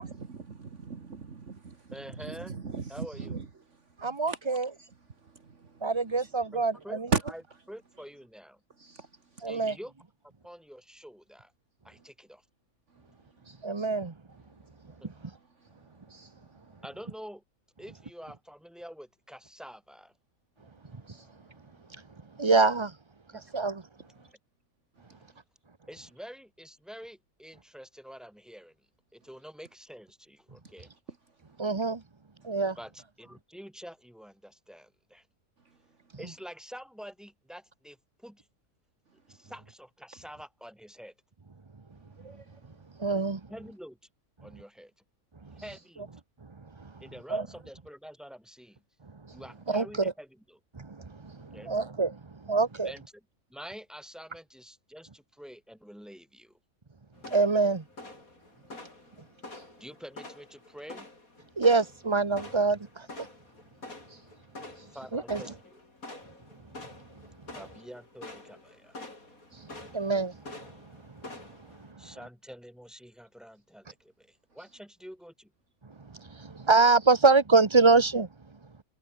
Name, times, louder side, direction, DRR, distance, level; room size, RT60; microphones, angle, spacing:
voice 1, 0.0-6.5 7.1-7.2 8.8-9.8 12.9-16.8 20.8-22.5 24.1-24.4 25.0-25.4 30.6-30.7 31.3-31.4 32.4-32.5 35.7-35.8 42.0-42.8 45.5-45.6 49.3-49.4 51.3-51.5 58.7-58.8 59.0-59.7 63.5-65.0 66.1-67.5 69.3-70.1 75.9-76.1 76.5-76.7, right 4 dB, 55° right, 2.1 m, -42 dB
voice 2, 1.9-2.6 2.9-3.3 6.5-7.0 7.3-7.4 7.7-8.6 9.5-9.9 10.4-11.5 11.8-12.4 15.0-15.2 16.8-17.4 17.8-20.1 23.3-23.4 25.9-28.8 29.1-30.9 32.8-35.3 36.2-38.5 39.3-41.1 43.5-44.0 44.4-44.9 45.5-46.1 47.0-48.8 49.3-50.6 51.5-51.8 52.8-56.6 59.8-61.1 64.9-65.8 67.6-69.1 72.0-75.5, equal, ahead, 5.3 m, -47 dB
voice 3, 4.0-4.7 5.8-7.1 9.4-9.7 13.6-14.1 22.4-22.9 23.5-23.8 31.6-32.0 32.4-32.8 43.0-43.4 47.3-47.4 49.7-50.1 50.9-51.0 51.7-52.1 52.5-52.9 57.3-57.8 61.6-63.3 65.1-65.4 69.9-70.3 76.3-78.3, right 4 dB, 25° right, 0.9 m, -24 dB
sound 1, 57.2-71.9, left 2 dB, 75° left, 6.2 m, -47 dB
omnidirectional pair, 1.5 m